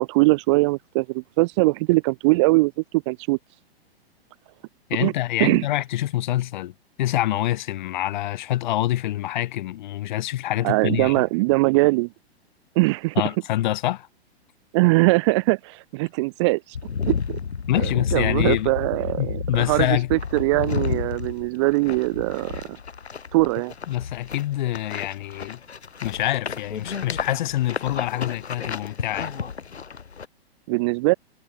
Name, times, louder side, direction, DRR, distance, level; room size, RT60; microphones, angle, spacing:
voice 1, 0.0-2.7 3.1-3.4 5.0-5.1 5.4-5.7 10.6-12.1 12.8-13.2 14.7-16.8 17.1-17.4 17.8-22.6 23.3-23.7 30.7-31.1, right 24 dB, 30° right, 0.6 m, -21 dB
voice 2, 4.9-11.2 13.2-14.1 17.7-18.7 19.2-20.1 23.9-25.6 26.0-29.3, left 14 dB, 45° left, 3.7 m, -26 dB
sound 1, 16.7-30.2, left 6 dB, 80° left, 0.8 m, -31 dB
figure-of-eight pair, 110°, 32 cm